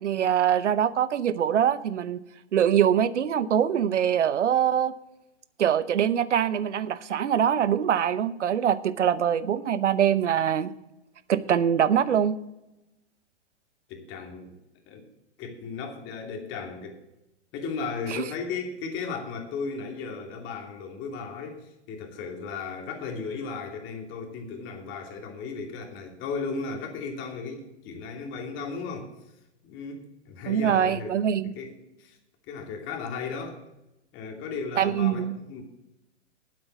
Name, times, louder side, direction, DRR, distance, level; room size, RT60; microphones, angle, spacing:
voice 1, 0.0-2.2 2.5-4.9 5.6-10.7 11.3-12.4 18.1-18.2 30.5-31.5 34.8-35.4, right 9 dB, 80° right, 16 dB, 0.9 m, -23 dB
voice 2, 13.9-14.5 14.9-15.0 15.4-17.0 17.5-29.1 29.6-31.2 31.6-32.2 32.5-33.6 34.1-35.6, left 5 dB, 35° left, 2 dB, 2.8 m, -35 dB
9.5 x 7.9 x 7.2 m, 0.92 s
hypercardioid pair, 120°, 35 cm